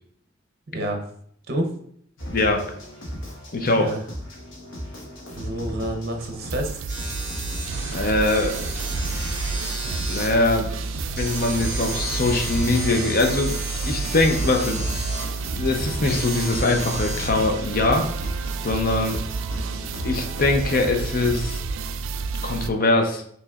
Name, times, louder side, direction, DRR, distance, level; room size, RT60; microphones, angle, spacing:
voice 1, 0.7-1.0 1.5-1.7 3.8-4.0 5.3-6.8, right 1 dB, 55° right, 3 dB, 0.7 m, -28 dB
sound 1, 2.2-21.6, equal, 75° left, 1.2 m, -36 dB
voice 2, 2.3-2.7 3.5-3.9 7.9-8.5 10.1-10.9 11.2-13.5 13.8-14.8 15.5-18.1 18.6-19.2 20.0-21.6 22.4-23.2, left 2 dB, 45° left, 4 dB, 0.6 m, -22 dB
sound 2, 6.2-22.7, right 4 dB, 80° right, 0.3 m, -30 dB
sound 3, 6.9-17.3, right 1 dB, 15° right, 1.4 m, -34 dB
5.6 x 3.1 x 2.4 m, 0.64 s
head